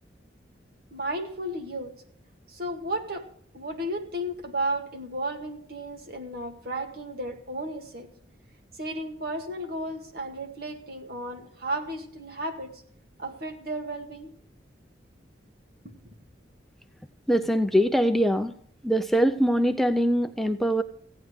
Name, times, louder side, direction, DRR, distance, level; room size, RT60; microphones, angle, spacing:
voice 1, 0.9-1.9 2.5-3.3 3.5-8.1 8.8-12.8 13.2-14.3, right 1 dB, 55° right, 5 dB, 1.9 m, -33 dB
voice 2, 17.3-18.5 18.8-20.8, equal, ahead, 6 dB, 0.4 m, -23 dB
15.5 x 9.8 x 4.8 m, 0.62 s
head